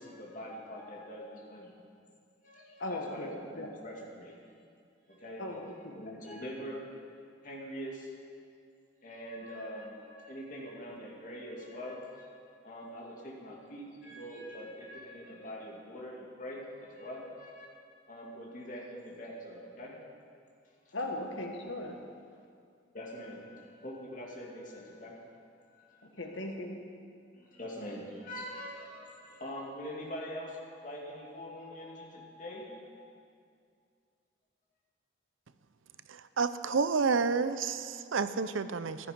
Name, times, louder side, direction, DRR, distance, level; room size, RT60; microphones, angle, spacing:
voice 1, 0.0-1.7 2.4-4.7 5.1-5.5 5.9-6.9 7.4-8.1 9.0-12.4 12.6-20.0 20.9-21.0 22.9-25.3 25.7-26.2 27.3-32.9, equal, 40° left, -3 dB, 2.5 m, -44 dB
voice 2, 2.8-3.7 5.4-6.0 20.9-22.0 26.0-26.8, left 1 dB, 80° left, 2 dB, 1.6 m, -38 dB
voice 3, 36.4-39.0, right 5 dB, 90° right, 13 dB, 0.6 m, -29 dB
14.5 x 12.5 x 5.2 m, 2.3 s
head